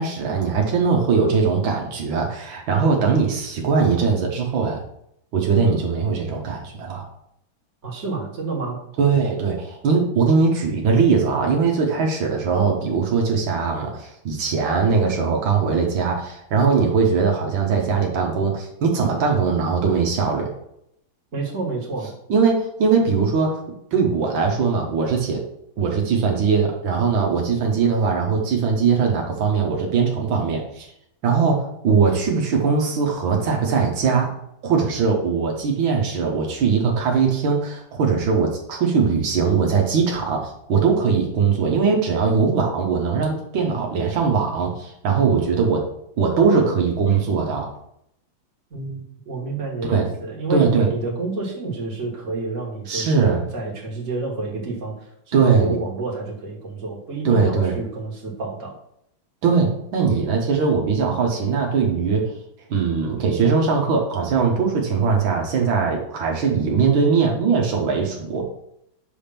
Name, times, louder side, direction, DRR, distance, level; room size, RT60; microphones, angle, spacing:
voice 1, 0.0-4.8 5.3-7.1 9.0-20.5 22.3-23.6 23.9-25.4 25.8-30.9 31.2-34.3 34.6-45.8 46.2-47.7 49.8-50.1 50.5-50.9 52.9-53.4 55.3-55.8 57.3-57.8 59.4-62.3 62.7-68.5, right 5 dB, 80° right, 1 dB, 1.9 m, -20 dB
voice 2, 7.8-8.8 21.3-22.1 48.7-58.8, right 3 dB, 40° right, -2 dB, 1.9 m, -29 dB
6.3 x 3.5 x 5.7 m, 0.76 s
omnidirectional pair, 2.1 m